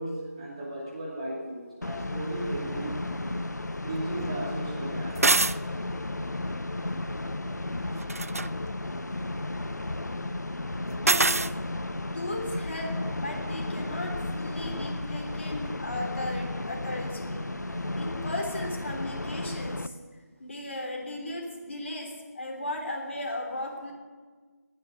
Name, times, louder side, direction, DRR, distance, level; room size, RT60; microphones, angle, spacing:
voice 1, 0.0-3.0 3.8-5.3, right 1 dB, 20° right, -5 dB, 2.6 m, -35 dB
sound 1, 1.8-19.9, left 2 dB, 75° left, 0.8 m, -34 dB
sound 2, 5.2-5.6 8.0-8.5 11.1-11.5, right 3 dB, 60° right, 0.4 m, -23 dB
voice 2, 11.0-11.4 12.1-19.9 20.4-23.9, left 1 dB, 45° left, 1 dB, 3.2 m, -36 dB
19.0 x 6.5 x 9.6 m, 1.4 s
figure-of-eight pair, 170°, 9 cm